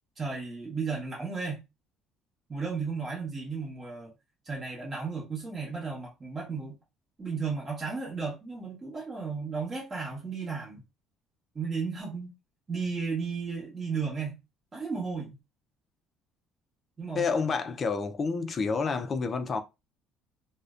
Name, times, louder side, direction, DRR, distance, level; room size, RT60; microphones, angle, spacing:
voice 1, 0.2-1.6 2.5-4.1 4.4-6.8 7.2-10.8 11.5-12.3 12.7-14.4 14.7-15.3 17.0-17.3, right 5 dB, 25° right, 0.9 m, -34 dB
voice 2, 17.1-19.6, left 4 dB, 30° left, 0.3 m, -29 dB
2.5 x 2.1 x 2.3 m
cardioid pair, 135°, 0 cm